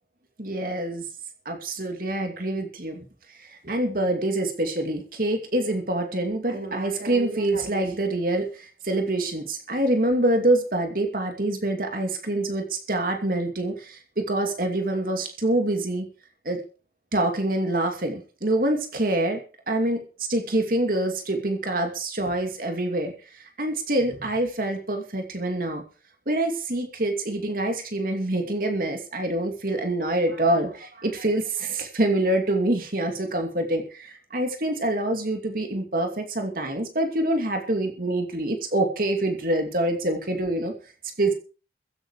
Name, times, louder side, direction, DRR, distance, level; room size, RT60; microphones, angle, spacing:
voice 1, 0.4-1.0 1.5-3.0 3.6-16.1 16.4-16.6 17.1-19.4 19.7-20.0 20.3-23.1 23.6-25.8 26.3-40.7 41.2-41.3, right 1 dB, 50° right, 4 dB, 2.6 m, -26 dB
15.0 x 11.5 x 4.9 m, 0.38 s
head